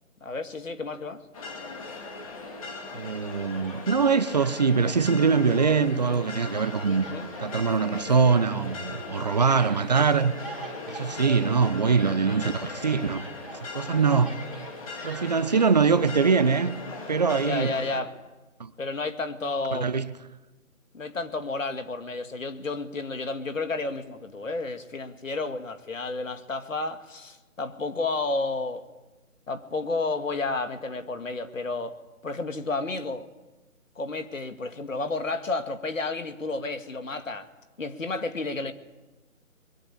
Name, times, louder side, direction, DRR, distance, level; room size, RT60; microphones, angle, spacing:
voice 1, 0.2-1.2 6.9-7.3 17.4-18.1 18.8-19.9 20.9-28.8 29.5-33.3 34.0-37.5 37.8-38.7, left 3 dB, 70° left, 2.3 m, -31 dB
sound 1, 1.3-18.0, left 3 dB, 25° left, 2.6 m, -39 dB
voice 2, 2.9-7.0 7.4-10.3 10.9-13.2 13.5-14.4 15.0-16.8 17.1-17.7 18.6-18.7 19.7-20.1, right 5 dB, 30° right, 0.9 m, -23 dB
Speech, 3.6-4.9 5.2-6.1 6.3-12.0 12.3-15.7, right 3 dB, ahead, 3.3 m, -46 dB
23.5 x 22.0 x 8.6 m
figure-of-eight pair, 160°, 41 cm